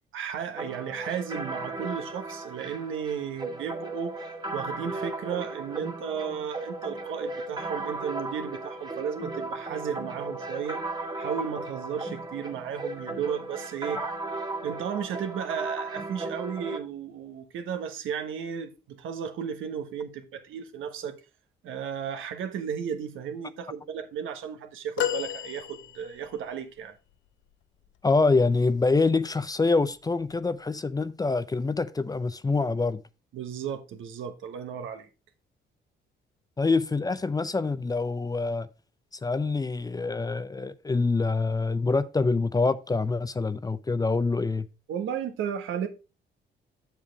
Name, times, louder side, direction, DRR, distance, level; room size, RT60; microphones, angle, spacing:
voice 1, 0.1-4.3 4.5-10.8 11.2-14.0 14.6-21.2 21.6-27.0 33.3-35.1 44.9-45.9, right 8 dB, 80° right, 1.2 m, -34 dB
sound 1, 0.6-16.8, right 2 dB, 20° right, 1.6 m, -36 dB
sound 2, 25.0-26.4 28.8-29.0 30.3-30.4, left 11 dB, 75° left, 0.6 m, -32 dB
voice 2, 28.0-33.0 36.6-38.7 39.2-44.7, left 3 dB, 20° left, 0.5 m, -25 dB
7.4 x 7.0 x 3.4 m
cardioid pair, 90°, 20 cm